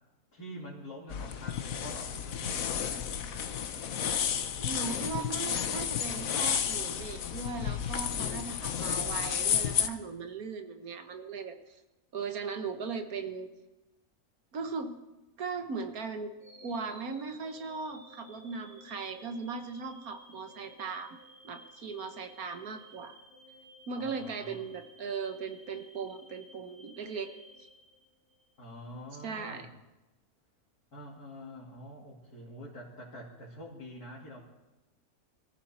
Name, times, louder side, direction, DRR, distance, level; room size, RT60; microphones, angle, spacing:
voice 1, 0.3-3.1 24.0-24.7 28.6-29.7 30.9-34.4, equal, 85° left, -7 dB, 3.5 m, -46 dB
sound 1, 1.1-9.9, left 8 dB, 65° left, 1.3 m, -32 dB
voice 2, 4.5-11.8 12.1-13.5 14.5-14.9 15.4-16.3 16.6-21.2 21.4-23.1 23.9-27.3 27.6-27.7 29.2-29.7, right 5 dB, 70° right, 7 dB, 1.8 m, -38 dB
sound 2, 16.4-28.5, right 1 dB, 50° right, 2.4 m, -55 dB
23.0 x 14.5 x 4.4 m, 1.0 s
omnidirectional pair, 1.6 m